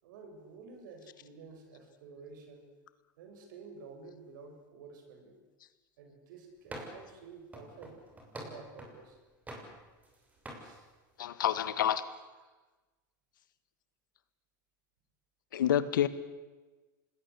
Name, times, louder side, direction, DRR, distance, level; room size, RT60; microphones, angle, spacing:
voice 1, 0.0-2.7 3.2-5.4 6.0-8.0 8.4-9.2 10.6-10.9 12.4-12.5, right 4 dB, 75° right, 5 dB, 6.9 m, -51 dB
sound 1, 6.7-7.1 7.5-9.0 9.5-10.2 10.5-10.7, right 1 dB, 15° right, 6.5 m, -45 dB
voice 2, 11.2-12.0 15.5-16.1, left 10 dB, 85° left, 14 dB, 1.7 m, -28 dB
26.0 x 20.0 x 8.4 m, 1.2 s
hypercardioid pair, 110°, 10 cm